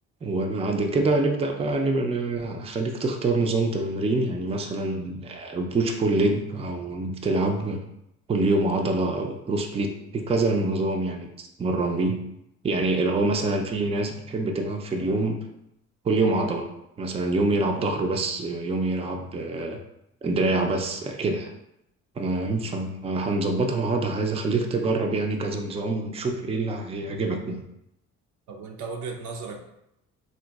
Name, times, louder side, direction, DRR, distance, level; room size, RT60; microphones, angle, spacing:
voice 1, 0.2-7.8 8.3-12.2 12.6-15.4 16.0-16.7 17.0-19.8 20.2-21.5 22.2-27.6, right 2 dB, 20° right, 3 dB, 0.4 m, -25 dB
voice 2, 28.5-29.6, right 4 dB, 85° right, 2 dB, 0.6 m, -36 dB
3.8 x 2.4 x 2.3 m, 0.81 s
cardioid pair, 90°, 30 cm